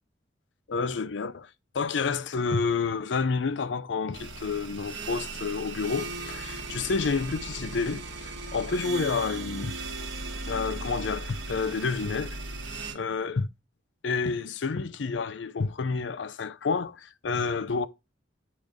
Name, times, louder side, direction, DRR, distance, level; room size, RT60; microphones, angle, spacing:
voice 1, 0.7-1.5 1.7-9.7 10.5-12.4 12.9-13.5 14.0-17.9, left 4 dB, 80° left, 0.5 m, -29 dB
sound 1, 4.1-12.9, right 3 dB, 85° right, 1.6 m, -37 dB
8.6 x 3.2 x 5.1 m
head